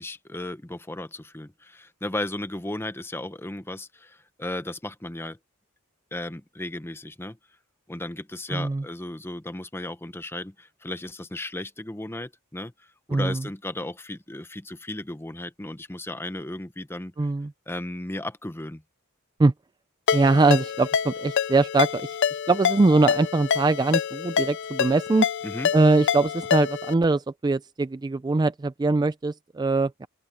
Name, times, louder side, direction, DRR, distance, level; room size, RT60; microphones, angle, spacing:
voice 1, 0.0-5.4 6.1-7.4 7.9-17.3 17.7-18.8 25.4-25.7, left 1 dB, 10° left, 0.9 m, -35 dB
voice 2, 8.5-8.8 13.1-13.4 17.2-17.5 19.4-19.5 20.1-25.3 25.7-29.9, right 3 dB, 20° right, 0.3 m, -22 dB
Ringtone, 20.1-26.9, left 8 dB, 60° left, 0.5 m, -27 dB
open air
head